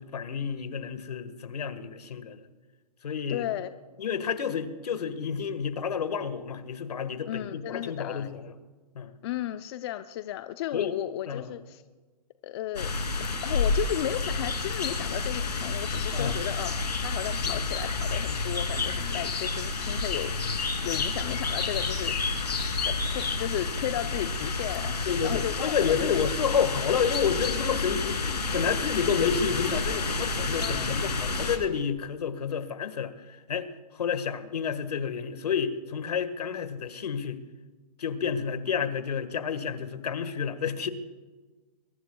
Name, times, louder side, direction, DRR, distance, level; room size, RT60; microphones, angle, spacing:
voice 1, 0.0-2.4 3.0-3.5 4.0-8.5 8.9-9.1 10.7-10.9 11.3-11.5 16.1-16.4 17.4-17.6 25.1-33.7 33.9-37.4 38.0-40.9, left 7 dB, 70° left, 11 dB, 1.6 m, -30 dB
voice 2, 3.3-3.7 7.3-8.3 9.2-11.8 12.4-12.9 13.2-22.2 22.8-24.9 25.2-26.2 30.6-31.0, left 12 dB, 40° left, 10 dB, 0.6 m, -34 dB
sound 1, 12.8-31.6, left 4 dB, 90° left, 3.0 m, -30 dB
23.5 x 23.0 x 2.3 m, 1.3 s
hypercardioid pair, 135°, 20 cm